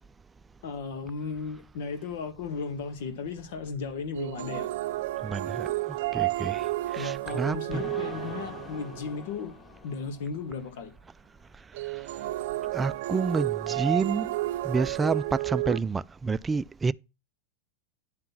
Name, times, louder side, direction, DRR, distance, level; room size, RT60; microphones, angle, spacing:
voice 1, 0.6-4.7 7.0-9.6 9.8-10.9, left 5 dB, 70° left, 1.9 m, -35 dB
sound 1, 4.1-9.2 11.7-15.8, right 17 dB, 70° right, 0.6 m, -31 dB
voice 2, 5.2-7.8 11.9-12.1 12.7-14.3 14.6-16.9, right 4 dB, 15° right, 0.4 m, -29 dB
sound 2, 7.7-11.1, left 6 dB, 25° left, 0.9 m, -45 dB
10.5 x 3.8 x 5.9 m
hypercardioid pair, 115°, 0 cm